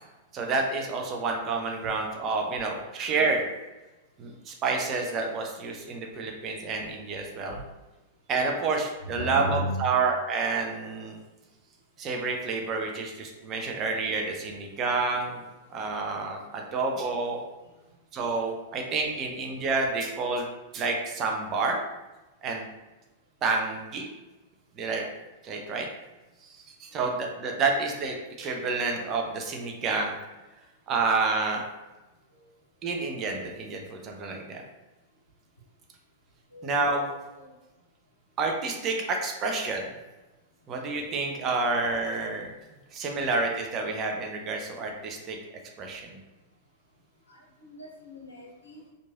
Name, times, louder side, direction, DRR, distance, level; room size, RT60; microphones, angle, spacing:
voice 1, 0.3-3.4 4.2-7.6 8.3-11.2 12.0-15.4 15.7-17.4 18.1-20.5 20.7-21.8 22.4-22.7 23.4-24.1 24.8-25.1 25.4-25.9 26.4-30.2 30.9-31.6 32.8-34.6 36.6-37.1 38.4-39.8 40.7-42.5 42.9-45.4 45.8-46.2, right 3 dB, 35° right, 1 dB, 0.5 m, -29 dB
voice 2, 9.0-10.0 26.9-27.1 32.3-32.5 36.5-37.5 38.8-39.1 47.3-48.9, equal, 85° left, -2 dB, 0.8 m, -37 dB
3.0 x 2.5 x 2.3 m, 1.1 s
figure-of-eight pair, 100°, 0 cm